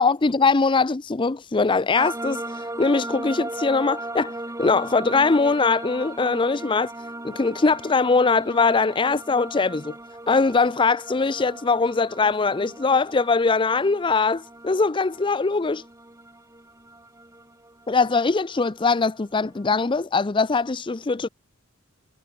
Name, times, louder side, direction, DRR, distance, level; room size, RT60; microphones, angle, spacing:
voice 1, 0.0-4.3 4.6-6.9 7.2-9.9 10.3-15.8 17.9-21.3, left 4 dB, 25° left, 0.5 m, -21 dB
sound 1, 1.9-19.7, right 2 dB, 15° right, 2.4 m, -38 dB
head